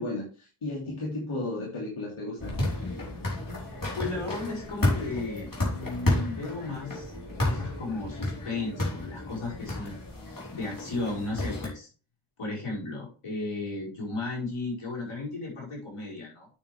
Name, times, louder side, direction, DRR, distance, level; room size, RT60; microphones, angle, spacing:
voice 1, 0.0-2.5, left 2 dB, 75° left, -4 dB, 3.0 m, -34 dB
sound 1, 2.4-11.7, left 1 dB, 40° left, 4.3 m, -31 dB
voice 2, 3.6-7.1 7.4-10.0 10.5-11.9 12.4-16.5, left 3 dB, 90° left, -3 dB, 5.1 m, -35 dB
8.9 x 7.0 x 3.5 m, 0.35 s
cardioid pair, 55°, 50 cm